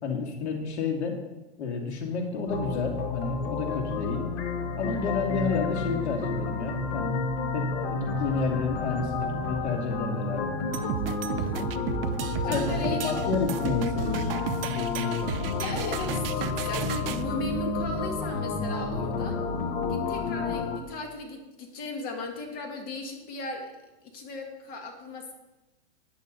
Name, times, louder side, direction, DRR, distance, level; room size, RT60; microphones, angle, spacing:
voice 1, 0.0-1.2 1.6-4.2 4.7-7.2 7.5-10.5 12.5-14.3, left 5 dB, 85° left, 1 dB, 2.6 m, -30 dB
sound 1, 2.5-20.8, left 4 dB, 65° left, 1.6 m, -31 dB
sound 2, 10.7-17.2, right 10 dB, 60° right, 0.7 m, -33 dB
voice 2, 11.3-11.8 12.4-13.1 15.5-19.4 19.9-23.7 24.0-25.3, left 2 dB, 30° left, 3 dB, 1.5 m, -37 dB
10.5 x 9.2 x 4.1 m, 1.0 s
supercardioid pair, 155°, 33 cm